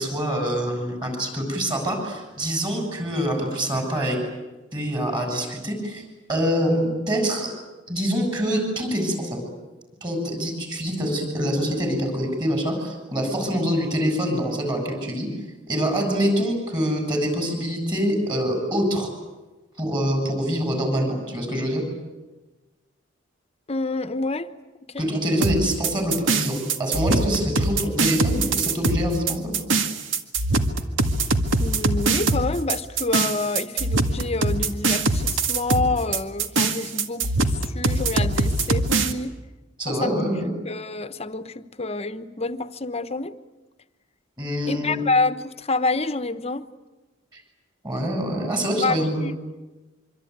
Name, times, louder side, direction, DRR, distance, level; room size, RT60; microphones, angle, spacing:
voice 1, 0.0-4.2 4.7-6.0 6.3-7.5 7.9-9.4 10.0-15.3 15.7-19.1 19.8-21.8 25.0-29.5 39.8-40.5 44.4-45.0 47.8-49.2, equal, 25° right, 4 dB, 7.4 m, -25 dB
voice 2, 23.7-24.5 24.9-25.1 31.6-39.3 39.9-40.3 40.6-43.3 44.7-46.6 48.8-49.3, left 3 dB, 35° left, 12 dB, 1.1 m, -27 dB
sound 1, 25.4-39.1, right 3 dB, 85° right, 1.8 m, -23 dB
25.5 x 25.0 x 9.5 m, 1.1 s
head